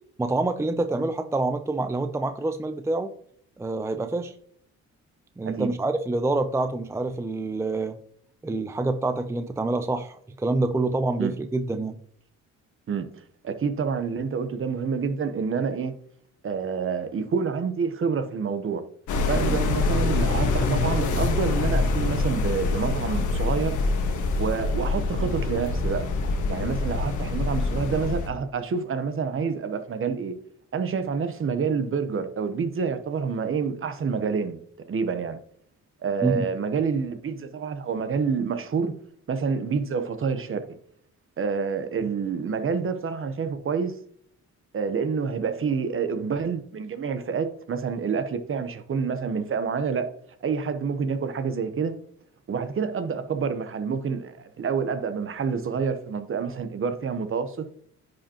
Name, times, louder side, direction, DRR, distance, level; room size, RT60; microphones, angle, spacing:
voice 1, 0.2-3.1 3.6-4.3 5.4-8.0 8.4-11.9 36.2-36.5, right 2 dB, 10° right, 0.5 m, -26 dB
voice 2, 13.4-15.9 16.4-18.8 19.3-23.8 24.4-26.1 26.5-30.3 30.7-34.6 34.9-35.4 36.0-38.9 39.3-40.6 41.4-43.9 44.7-50.1 50.4-51.9 52.5-57.7, right 5 dB, 45° right, 0.9 m, -28 dB
sound 1, 19.1-28.3, left 3 dB, 75° left, 1.5 m, -25 dB
10.5 x 5.1 x 2.9 m
cardioid pair, 90°, 30 cm